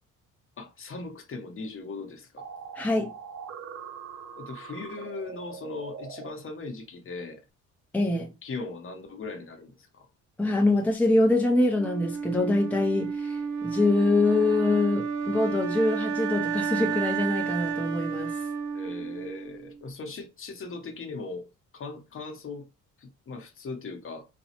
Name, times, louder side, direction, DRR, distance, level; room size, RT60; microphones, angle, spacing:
voice 1, 0.6-2.4 4.3-7.4 8.4-10.1 18.7-21.4 21.7-22.6 23.0-24.2, left 3 dB, 45° left, 0.9 m, -39 dB
sound 1, 2.4-6.3, right 6 dB, 55° right, 0.7 m, -42 dB
voice 2, 2.7-3.1 7.9-8.3 10.4-13.4 13.6-18.3, left 2 dB, 5° left, 0.6 m, -24 dB
Wind instrument woodwind instrument, 11.8-19.8, right 6 dB, 90° right, 0.8 m, -31 dB
4.2 x 2.3 x 2.9 m
cardioid pair, 90°, 30 cm